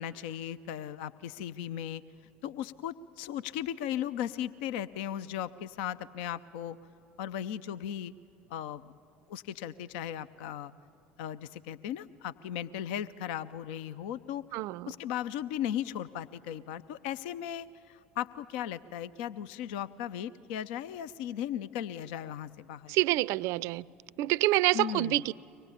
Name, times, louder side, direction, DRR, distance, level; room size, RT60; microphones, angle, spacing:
voice 1, 0.0-2.0 2.4-6.8 7.2-8.1 8.5-8.8 9.3-10.7 11.2-14.4 14.8-23.0 24.7-25.2, left 10 dB, 60° left, 15 dB, 0.6 m, -37 dB
voice 2, 14.5-14.9 22.9-23.8 24.2-25.3, right 18 dB, 55° right, 22 dB, 0.5 m, -27 dB
24.0 x 19.5 x 10.0 m, 3.0 s
figure-of-eight pair, 70°, 6 cm